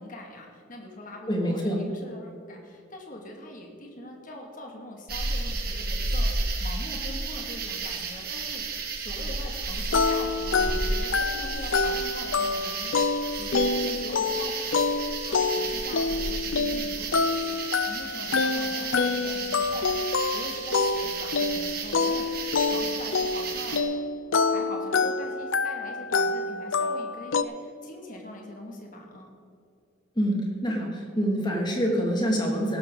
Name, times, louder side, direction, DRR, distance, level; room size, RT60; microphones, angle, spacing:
voice 1, 0.0-14.8 15.2-17.6 17.9-20.1 20.3-23.9 24.4-29.3, left 1 dB, 40° left, 1 dB, 2.4 m, -42 dB
voice 2, 1.3-1.8 30.2-32.8, equal, 20° left, 0 dB, 2.5 m, -26 dB
sound 1, 5.1-23.8, right 3 dB, 45° right, 1.9 m, -32 dB
sound 2, 9.9-27.4, left 4 dB, 75° left, 0.6 m, -27 dB
16.5 x 12.5 x 4.0 m, 2.5 s
head